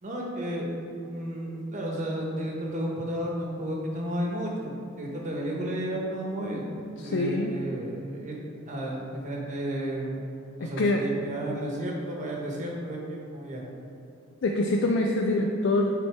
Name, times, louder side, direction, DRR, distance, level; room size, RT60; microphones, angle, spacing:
voice 1, 0.0-0.7 1.1-6.7 7.0-8.4 8.6-10.2 10.6-13.6, right 1 dB, 35° right, -2 dB, 1.1 m, -32 dB
voice 2, 7.0-7.5 10.8-11.0 14.4-15.9, left 2 dB, 60° left, 1 dB, 0.4 m, -24 dB
8.3 x 4.3 x 3.4 m, 2.6 s
head